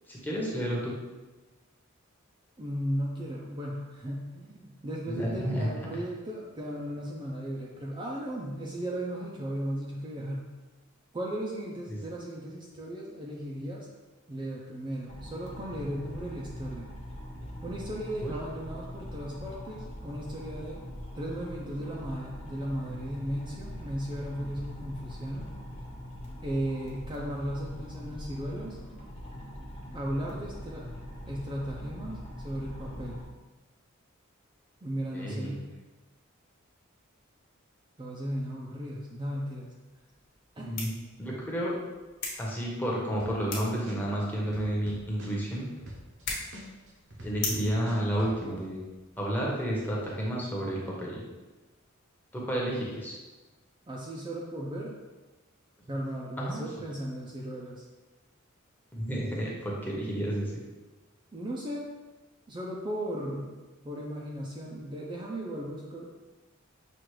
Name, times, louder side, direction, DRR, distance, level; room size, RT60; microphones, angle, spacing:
voice 1, 0.1-0.9 5.0-5.7 11.9-12.0 18.2-18.3 35.1-35.6 40.6-40.9 41.2-41.8 42.4-45.7 47.2-48.8 49.2-51.2 52.3-53.1 55.9-56.0 56.4-56.6 58.9-60.6, right 1 dB, 10° left, -4 dB, 0.8 m, -31 dB
voice 2, 2.6-10.5 11.1-13.9 14.3-16.9 17.6-20.8 21.1-25.5 26.4-28.8 29.9-30.9 31.3-33.2 34.8-35.6 38.0-39.7 40.6-40.7 53.9-54.9 55.9-57.8 61.3-61.8 62.5-63.5 63.8-66.1, equal, 25° right, -3 dB, 0.4 m, -36 dB
sound 1, 15.1-33.3, equal, 35° left, 1.0 m, -42 dB
sound 2, 39.9-50.9, left 3 dB, 60° left, 1.1 m, -43 dB
sound 3, 43.2-43.6 43.9-46.2 46.5-48.3, equal, 60° right, 0.8 m, -43 dB
6.0 x 2.4 x 3.2 m, 1.2 s
head